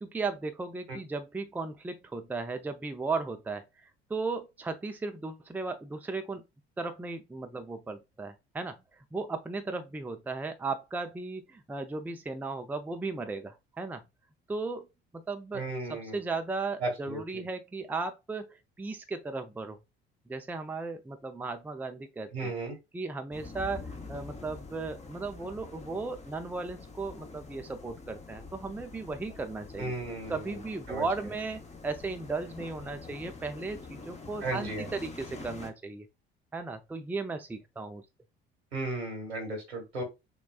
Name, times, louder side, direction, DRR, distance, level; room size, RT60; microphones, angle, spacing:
voice 1, 0.0-6.4 6.8-8.8 9.1-14.0 14.5-14.9 15.1-15.6 15.9-19.8 20.3-22.5 22.9-29.9 30.3-36.1 36.5-38.0, right 3 dB, 5° right, 0.5 m, -36 dB
voice 2, 15.5-16.2 16.8-17.4 22.3-22.8 29.8-30.4 30.9-31.0 34.4-34.9 38.7-40.0, right 2 dB, 80° right, 1.6 m, -35 dB
sound 1, 23.3-35.7, left 3 dB, 20° left, 1.0 m, -46 dB
6.4 x 2.3 x 2.4 m
figure-of-eight pair, 55°, 31 cm